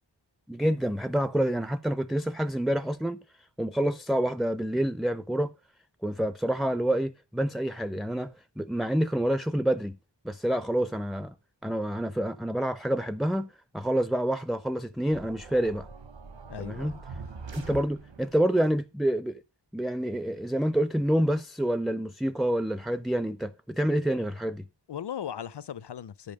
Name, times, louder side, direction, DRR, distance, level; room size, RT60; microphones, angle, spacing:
voice 1, 0.5-3.2 3.6-5.5 6.0-10.0 10.2-11.3 11.6-15.9 16.6-16.9 17.5-19.4 19.7-24.7, right 1 dB, ahead, 0.4 m, -28 dB
sound 1, 15.1-18.4, right 4 dB, 85° right, 1.0 m, -43 dB
voice 2, 16.5-17.0 24.9-26.3, left 9 dB, 65° left, 0.6 m, -37 dB
9.6 x 5.4 x 5.2 m
wide cardioid pair, 50°, 43 cm